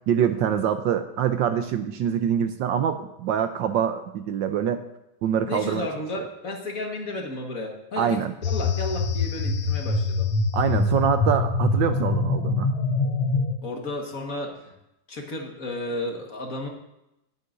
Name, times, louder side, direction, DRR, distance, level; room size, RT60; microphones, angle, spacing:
voice 1, 0.1-4.8 5.2-5.9 6.2-6.3 8.0-8.3 10.5-12.7, right 9 dB, 75° right, 8 dB, 1.2 m, -25 dB
voice 2, 5.5-10.3 13.6-14.7 15.1-16.7, left 2 dB, 45° left, 1 dB, 1.8 m, -33 dB
sound 1, 8.4-13.5, left 3 dB, 85° left, 1.9 m, -24 dB
18.0 x 9.4 x 2.6 m, 0.86 s
omnidirectional pair, 2.3 m